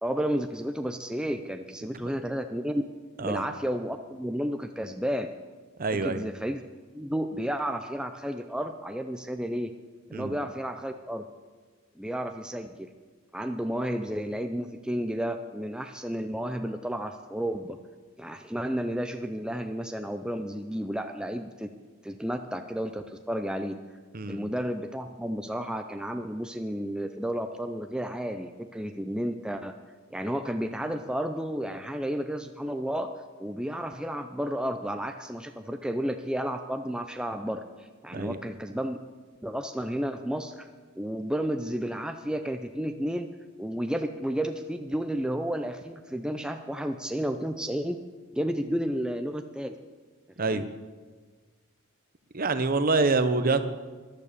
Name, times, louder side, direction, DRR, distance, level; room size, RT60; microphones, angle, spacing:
voice 1, 0.0-2.8 3.2-5.3 6.0-6.6 6.9-9.7 10.1-11.3 12.0-12.9 13.3-17.8 18.2-21.7 22.0-23.8 24.3-29.8 30.1-33.1 33.4-39.0 39.4-40.7 41.0-43.3 43.6-48.0 48.3-49.8 50.4-50.7, equal, 5° right, 6 dB, 0.5 m, -32 dB
voice 2, 5.8-6.2 10.1-10.4 24.1-24.4 38.1-38.4 50.4-50.7 52.3-53.6, right 3 dB, 40° right, 11 dB, 0.8 m, -26 dB
13.5 x 11.5 x 6.8 m, 1.4 s
head